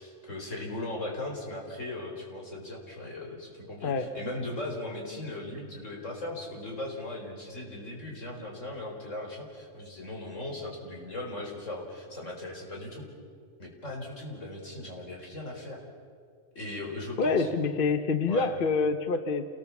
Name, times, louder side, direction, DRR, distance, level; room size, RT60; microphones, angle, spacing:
voice 1, 0.0-13.0 13.6-15.8 16.5-17.5 18.3-18.5, left 2 dB, 90° left, 0 dB, 4.9 m, -38 dB
voice 2, 3.8-4.1 17.2-19.5, left 4 dB, 50° left, 9 dB, 1.1 m, -26 dB
28.0 x 19.5 x 7.2 m, 2.2 s
omnidirectional pair, 1.3 m